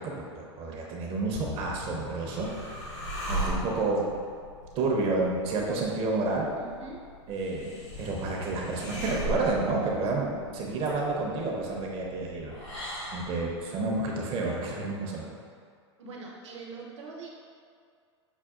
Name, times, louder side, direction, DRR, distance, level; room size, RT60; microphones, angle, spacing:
voice 1, 0.0-2.9 3.3-4.0 4.8-6.5 7.3-12.5 13.1-15.3, right 3 dB, 40° right, -1 dB, 0.6 m, -30 dB
sound 1, 1.3-6.2 7.9-13.5, left 1 dB, 45° left, 0.7 m, -45 dB
sound 2, 1.6-13.6, right 1 dB, 90° left, 1.4 m, -39 dB
voice 2, 6.5-7.1 16.0-17.3, right 4 dB, 75° right, -2 dB, 0.9 m, -43 dB
5.9 x 2.3 x 2.3 m, 2.2 s
hypercardioid pair, 110°, 15 cm